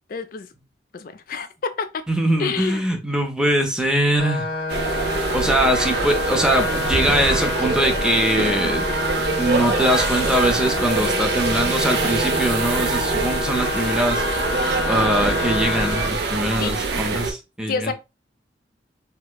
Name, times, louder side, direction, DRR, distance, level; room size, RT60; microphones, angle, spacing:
voice 1, 0.1-0.5 0.9-2.0 2.4-2.9 16.6-16.8 17.7-17.9, left 5 dB, 50° left, 0.4 m, -28 dB
voice 2, 2.1-4.5 5.3-8.9 9.4-14.2 14.9-17.9, right 1 dB, 5° right, 0.5 m, -22 dB
sound 1, 4.2-16.1, left 3 dB, 90° left, 1.3 m, -28 dB
sound 2, 4.7-17.3, right 3 dB, 65° right, 0.5 m, -24 dB
4.3 x 2.0 x 2.2 m
head